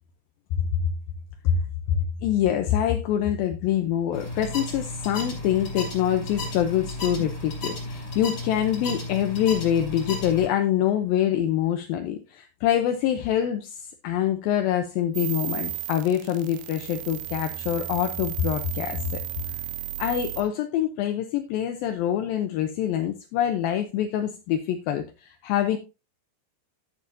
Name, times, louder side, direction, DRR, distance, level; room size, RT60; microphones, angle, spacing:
voice 1, 2.2-19.2 20.0-25.8, left 10 dB, 75° left, 6 dB, 2.3 m, -25 dB
sound 1, 4.1-10.5, left 2 dB, 25° left, 3.5 m, -34 dB
sound 2, 15.1-20.4, right 14 dB, 70° right, 2.4 m, -34 dB
12.0 x 8.8 x 2.6 m, 0.28 s
omnidirectional pair, 4.8 m